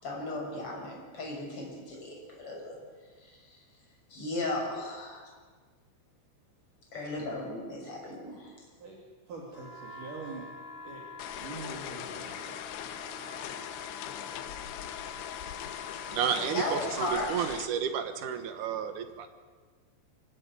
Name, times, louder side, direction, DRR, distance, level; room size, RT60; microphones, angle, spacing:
voice 1, 0.0-2.8 3.2-3.3 4.1-5.3 6.9-8.5 16.3-17.5, left 2 dB, 30° left, -1 dB, 6.9 m, -36 dB
voice 2, 9.3-10.5 10.8-11.1 11.4-12.9, right 3 dB, 50° right, -1 dB, 3.6 m, -44 dB
sound 1, 9.5-16.7, left 1 dB, 55° left, 3.9 m, -47 dB
sound 2, 11.2-17.7, left 11 dB, 75° left, 2.8 m, -40 dB
voice 3, 16.1-19.3, right 8 dB, 75° right, 8 dB, 1.8 m, -31 dB
24.5 x 17.5 x 9.7 m, 1.5 s
omnidirectional pair, 5.6 m